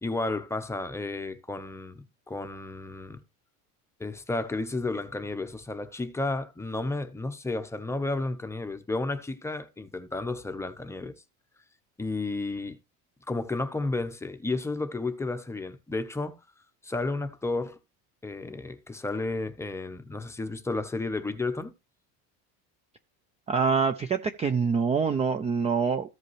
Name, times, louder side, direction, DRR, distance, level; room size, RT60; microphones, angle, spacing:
voice 1, 0.0-3.2 4.0-11.1 12.0-12.8 13.3-16.4 16.8-17.8 18.2-21.7, left 2 dB, 10° left, 0.7 m, -32 dB
voice 2, 23.5-26.1, right 5 dB, 20° right, 0.4 m, -25 dB
14.5 x 5.2 x 3.1 m
cardioid pair, 155°, 35 cm